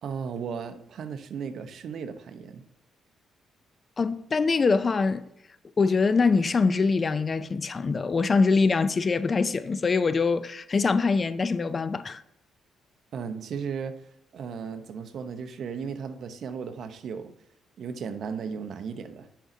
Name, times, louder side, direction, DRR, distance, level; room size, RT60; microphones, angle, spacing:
voice 1, 0.0-2.6 13.1-14.0 14.3-17.3 17.8-19.3, right 6 dB, 65° right, 0.8 m, -35 dB
voice 2, 4.0-5.2 5.8-12.2, left 4 dB, 35° left, 0.4 m, -24 dB
10.0 x 5.1 x 2.7 m
cardioid pair, 90°, 0 cm